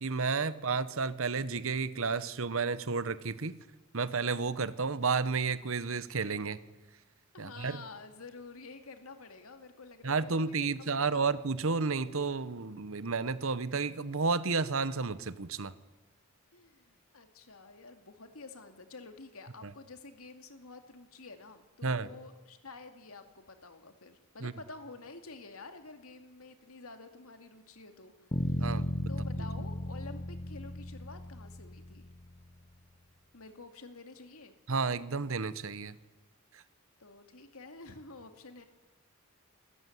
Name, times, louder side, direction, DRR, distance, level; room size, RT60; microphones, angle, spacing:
voice 1, 0.0-3.6 3.9-6.6 7.4-7.8 10.0-15.7 19.6-19.7 21.8-22.1 24.4-24.5 28.6-28.8 34.7-36.0 36.5-36.6, right 4 dB, 70° right, 16 dB, 1.0 m, -31 dB
voice 2, 7.3-11.3 16.5-28.7 29.1-32.1 33.3-34.5 37.0-38.7, left 3 dB, 90° left, 7 dB, 2.5 m, -49 dB
sound 1, 28.3-32.4, left 1 dB, 25° left, 0.9 m, -35 dB
26.5 x 14.0 x 9.5 m, 1.1 s
head